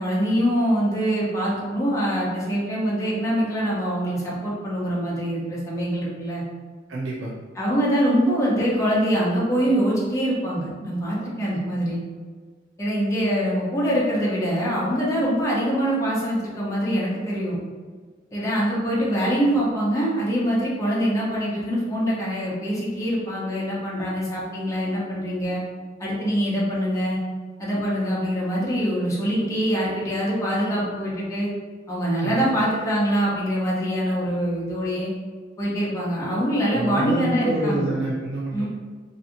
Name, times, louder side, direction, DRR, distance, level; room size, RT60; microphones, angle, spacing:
voice 1, 0.0-6.4 7.5-12.0 12.8-17.6 18.3-25.6 26.0-27.2 27.6-31.5 31.9-35.1 35.6-37.9 38.5-38.7, equal, 15° left, -7 dB, 0.6 m, -24 dB
voice 2, 6.9-7.3 32.2-32.5 36.7-38.7, right 2 dB, 85° right, -5 dB, 0.5 m, -27 dB
2.7 x 2.5 x 2.5 m, 1.5 s
head